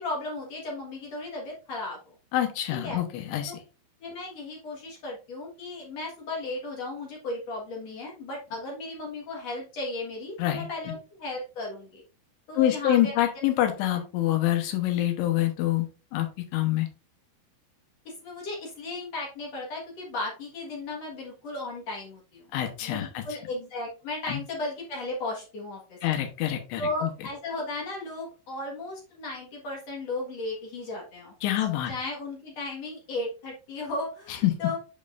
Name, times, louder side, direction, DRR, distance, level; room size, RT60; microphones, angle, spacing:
voice 1, 0.0-2.1 2.8-3.0 4.0-12.0 12.5-13.1 18.1-22.5 22.8-26.0 26.8-31.3 31.9-34.8, left 2 dB, 55° left, -2 dB, 1.9 m, -35 dB
voice 2, 2.3-3.5 10.4-10.7 12.6-15.9 16.1-16.3 16.5-16.9 22.5-23.2 24.3-24.4 26.0-27.1 31.4-31.9 34.4-34.5, left 13 dB, 85° left, 4 dB, 3.4 m, -26 dB
8.0 x 5.4 x 2.5 m, 0.32 s
omnidirectional pair, 5.2 m